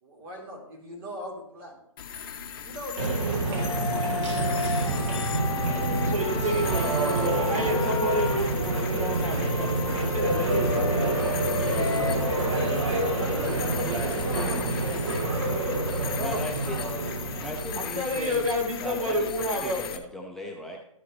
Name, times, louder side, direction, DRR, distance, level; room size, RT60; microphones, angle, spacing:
voice 1, 0.0-1.8 2.6-6.7 6.9-7.2 13.1-15.5 17.4-17.6 20.4-20.5, equal, 40° right, -2 dB, 3.0 m, -41 dB
sound 1, 2.0-20.0, left 8 dB, 40° left, 0.7 m, -38 dB
sound 2, 3.0-18.8, right 2 dB, 55° right, 1.6 m, -27 dB
Wind instrument woodwind instrument, 3.5-8.3 9.0-12.2, left 4 dB, 20° left, 1.8 m, -33 dB
voice 2, 6.1-12.6 13.7-14.1 16.2-16.4 17.7-19.8, equal, 75° right, 2 dB, 1.8 m, -31 dB
voice 3, 16.1-16.8 17.4-18.5 18.8-20.8, left 1 dB, ahead, -1 dB, 0.5 m, -37 dB
13.0 x 5.7 x 3.0 m, 0.76 s
figure-of-eight pair, 125°, 18 cm